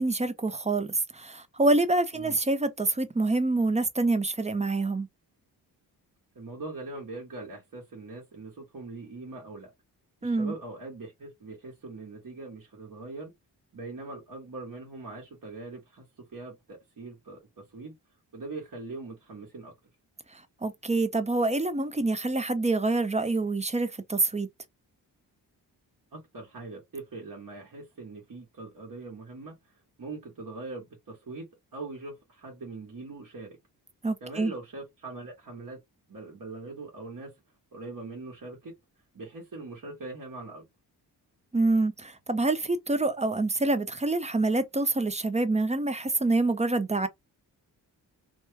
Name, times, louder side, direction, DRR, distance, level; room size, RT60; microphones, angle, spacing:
voice 1, 0.0-5.1 10.2-10.5 20.3-24.5 34.0-34.5 41.5-47.1, right 2 dB, 15° right, 0.6 m, -26 dB
voice 2, 6.3-9.7 10.2-13.3 13.7-18.0 18.3-19.7 26.1-33.6 34.2-35.8 36.1-37.3 37.7-38.7 39.1-40.6, right 3 dB, 55° right, 1.4 m, -42 dB
3.0 x 2.2 x 3.2 m
cardioid pair, 65°, 41 cm